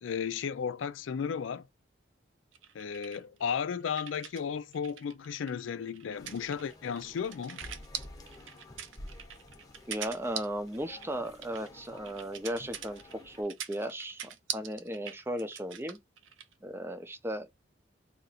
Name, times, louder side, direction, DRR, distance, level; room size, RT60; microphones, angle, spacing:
voice 1, 0.0-1.7 2.7-7.6, left 7 dB, 90° left, 0.4 m, -34 dB
sound 1, 2.5-4.4 4.7-16.5, right 9 dB, 85° right, 0.6 m, -43 dB
sound 2, 6.2-13.4, left 1 dB, 20° left, 0.9 m, -51 dB
voice 2, 9.9-14.2 14.5-16.0 16.6-17.5, equal, 10° right, 0.5 m, -36 dB
2.9 x 2.5 x 4.1 m
head